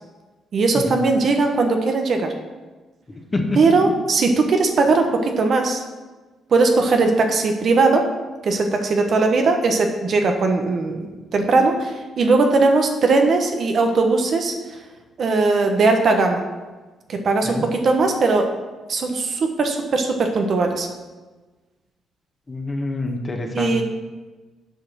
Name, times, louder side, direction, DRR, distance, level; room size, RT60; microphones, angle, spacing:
voice 1, 0.5-2.3 3.6-5.8 6.5-8.1 8.4-14.8 15.2-16.4 17.1-18.5 18.9-20.9 23.5-23.8, right 3 dB, 60° right, 4 dB, 1.1 m, -19 dB
voice 2, 22.5-23.8, left 2 dB, 30° left, 2 dB, 1.5 m, -26 dB
8.0 x 4.9 x 6.3 m, 1.3 s
supercardioid pair, 65°, 0 cm